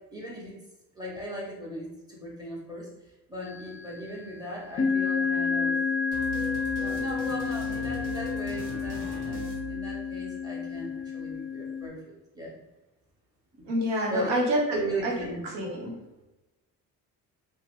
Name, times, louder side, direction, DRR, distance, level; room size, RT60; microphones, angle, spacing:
voice 1, 0.1-0.5 0.9-2.9 3.3-5.7 6.5-12.6 13.5-13.7 14.1-14.3 14.7-15.4, right 1 dB, 10° right, -4 dB, 1.2 m, -38 dB
sound 1, 3.4-3.9 4.7-11.9, left 5 dB, 30° left, 0.5 m, -30 dB
sound 2, 6.1-10.4, right 3 dB, 45° right, 1.0 m, -40 dB
voice 2, 13.7-15.1 15.5-15.9, equal, 75° right, -2 dB, 0.9 m, -27 dB
2.7 x 2.2 x 3.1 m, 1.1 s
hypercardioid pair, 45°, 44 cm